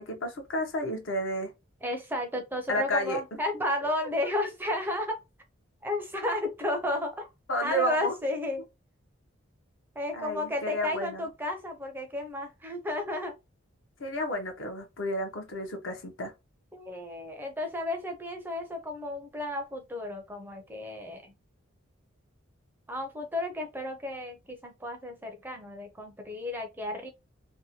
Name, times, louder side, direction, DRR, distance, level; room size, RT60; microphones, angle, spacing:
voice 1, 0.0-1.5 2.7-3.4 7.5-8.1 10.1-11.3 14.0-16.3, equal, 70° left, 0.7 m, -31 dB
voice 2, 1.8-5.2 5.8-7.3 7.6-8.6 10.0-13.3 16.7-21.3 22.9-27.1, left 1 dB, 10° right, 0.4 m, -33 dB
2.7 x 2.1 x 2.7 m
head